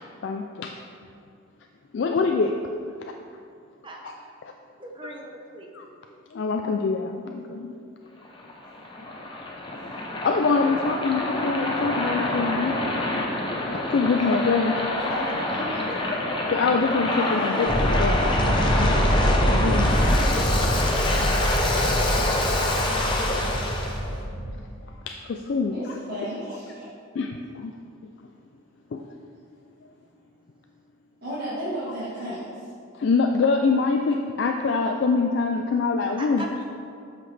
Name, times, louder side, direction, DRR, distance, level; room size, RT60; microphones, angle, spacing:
voice 1, 0.2-0.7 1.9-2.6 3.0-3.1 4.0-4.2 5.7-5.9 6.3-7.7 10.2-12.8 13.7-15.2 16.5-18.2 18.5-19.1 19.4-19.9 24.0-24.4 25.1-25.8 27.1-27.7 28.0-28.1 28.9-29.0 32.9-36.4, left 4 dB, 55° left, 3 dB, 0.3 m, -25 dB
voice 2, 4.8-5.7 36.2-36.7, right 1 dB, 25° right, 0 dB, 0.7 m, -39 dB
Waves surf, 8.2-24.0, left 2 dB, 25° left, 0.7 m, -26 dB
voice 3, 9.7-10.1 14.3-16.1 22.8-23.2 25.7-26.9 31.2-32.7, equal, 50° right, -12 dB, 1.5 m, -34 dB
sound 1, 17.7-24.5, equal, 75° left, 1.4 m, -24 dB
7.6 x 5.8 x 3.3 m, 2.4 s
head